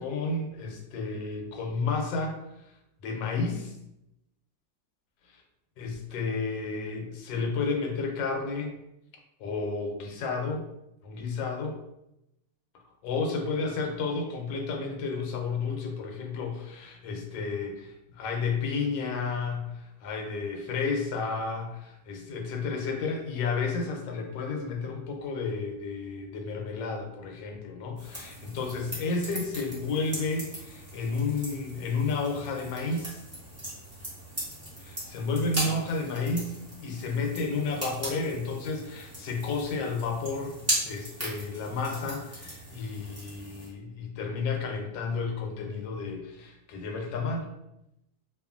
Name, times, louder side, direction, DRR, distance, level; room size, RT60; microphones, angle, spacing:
voice 1, 0.0-2.3 3.0-3.7 5.8-8.8 9.4-10.6 11.0-11.8 13.0-33.2 34.8-36.5 36.8-47.5, left 4 dB, 80° left, 2 dB, 1.3 m, -31 dB
sound 1, 28.0-43.7, equal, 15° right, 0.5 m, -38 dB
2.8 x 2.4 x 2.4 m, 0.87 s
omnidirectional pair, 2.0 m